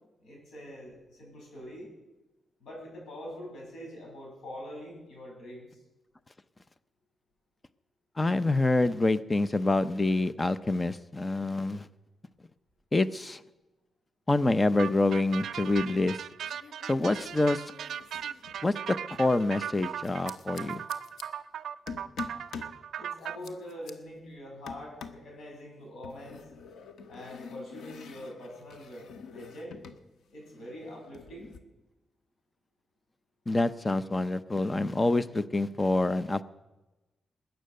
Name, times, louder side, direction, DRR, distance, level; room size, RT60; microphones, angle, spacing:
voice 1, 0.2-1.9 2.6-5.8 23.0-26.4 27.1-29.8 30.3-31.6, equal, 65° left, -1 dB, 6.9 m, -44 dB
voice 2, 8.2-11.9 12.9-13.4 14.3-16.2 16.9-17.6 18.6-20.8 33.5-36.4, left 2 dB, 20° left, 15 dB, 0.6 m, -26 dB
sound 1, 14.8-23.4, right 9 dB, 75° right, 0.5 m, -38 dB
sound 2, 15.6-16.1 16.4-19.0 20.0-21.2 21.9-22.8 23.2-23.9 24.7-25.3 26.0-30.0 30.3-31.6, left 5 dB, 80° left, 1.1 m, -46 dB
20.5 x 9.1 x 6.5 m, 1.0 s
wide cardioid pair, 145°, 0 cm